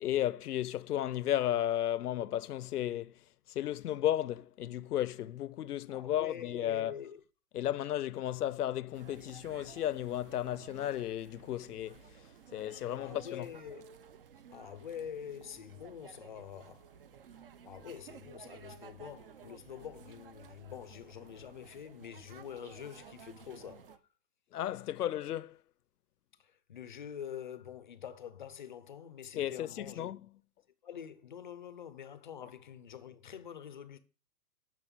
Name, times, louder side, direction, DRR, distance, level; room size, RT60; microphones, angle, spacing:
voice 1, 0.0-3.2 3.5-6.9 7.5-12.0 12.5-13.5 24.5-25.6 29.3-30.3, left 12 dB, 65° left, 0.8 m, -34 dB
voice 2, 5.9-7.2 13.0-13.8 14.5-16.9 17.6-24.0 26.4-30.1 30.8-34.0, left 8 dB, 30° left, 0.6 m, -46 dB
sound 1, 8.9-24.0, right 7 dB, 35° right, 0.7 m, -55 dB
11.0 x 6.5 x 6.8 m
hypercardioid pair, 175°, 49 cm